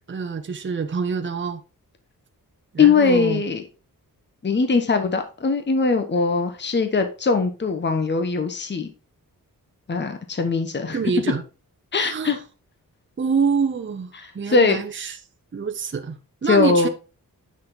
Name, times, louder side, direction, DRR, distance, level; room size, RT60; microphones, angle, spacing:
voice 1, 0.1-1.6 2.7-3.4 10.9-11.4 12.0-12.4 13.2-15.2 15.5-16.9, right 5 dB, 35° right, 0.8 m, -26 dB
voice 2, 2.8-3.6 4.4-8.9 9.9-11.0 11.9-12.4 14.2-14.8 16.5-16.9, left 4 dB, 30° left, 1.1 m, -21 dB
9.5 x 6.2 x 3.9 m
wide cardioid pair, 120°, 35 cm